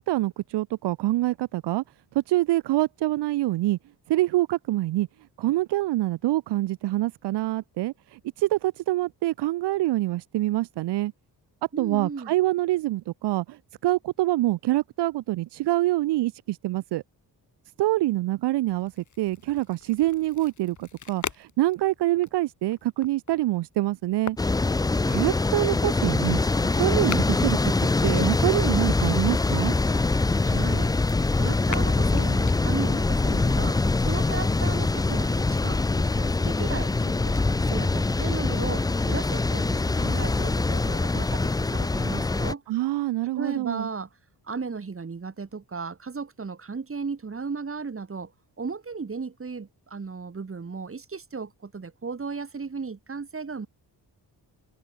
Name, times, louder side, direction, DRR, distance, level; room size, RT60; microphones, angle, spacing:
voice 1, 0.0-1.8 2.1-3.8 4.1-5.1 5.4-11.1 11.8-17.0 17.8-18.9 19.2-24.4 25.1-26.4 26.8-27.6 28.0-29.7 42.7-43.9, right 16 dB, 80° right, 0.5 m, -25 dB
voice 2, 11.7-12.3 30.4-30.9 31.3-42.6 43.4-44.1 44.4-48.3 48.6-53.7, right 5 dB, 30° right, 5.5 m, -35 dB
sound 1, 18.7-28.6 29.3-33.5 34.1-37.5, left 7 dB, 45° left, 3.0 m, -44 dB
sound 2, 24.4-42.5, left 3 dB, 10° left, 0.3 m, -24 dB
wide cardioid pair, 130°, 41 cm